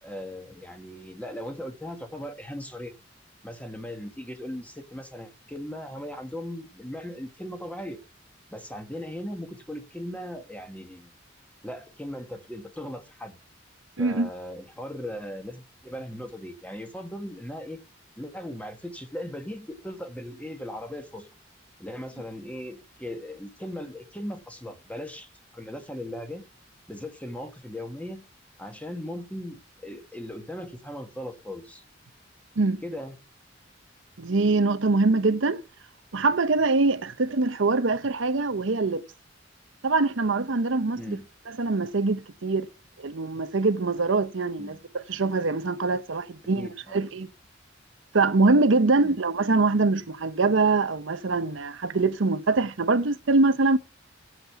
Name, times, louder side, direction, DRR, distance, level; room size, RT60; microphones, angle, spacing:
voice 1, 0.0-3.0 3.4-8.0 8.5-11.1 11.6-13.4 14.0-17.8 18.2-21.3 21.8-26.5 26.9-28.2 28.6-31.8 32.8-33.2 40.9-41.2 44.6-44.8 46.5-47.0 49.0-49.2, left 1 dB, 10° left, 1.6 m, -38 dB
voice 2, 14.0-14.3 32.6-32.8 34.2-35.6 36.1-39.0 39.8-41.2 41.5-42.7 43.0-47.3 48.1-53.8, right 3 dB, 80° right, 0.8 m, -23 dB
8.0 x 7.5 x 6.9 m
head